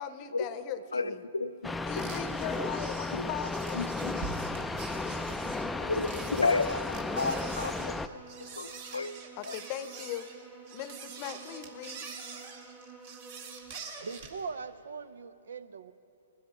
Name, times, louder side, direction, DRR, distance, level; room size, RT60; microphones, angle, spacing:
voice 1, 0.0-1.2 1.9-4.2 5.8-6.5 9.4-10.3 10.7-12.1, left 9 dB, 35° left, 13 dB, 0.7 m, -40 dB
voice 2, 0.9-1.7 3.1-3.3 3.7-4.2 5.9-7.9 8.4-9.1 9.4-9.6, left 3 dB, 90° left, 11 dB, 0.5 m, -32 dB
sound 1, 1.6-8.1, left 2 dB, 5° left, 0.4 m, -34 dB
sound 2, 1.9-14.4, right 6 dB, 55° right, 2.1 m, -45 dB
sound 3, 4.9-13.7, right 3 dB, 10° right, 1.1 m, -51 dB
voice 3, 14.0-15.9, right 5 dB, 75° right, 14 dB, 0.6 m, -40 dB
19.5 x 12.0 x 5.3 m, 2.9 s
hypercardioid pair, 120°, 0 cm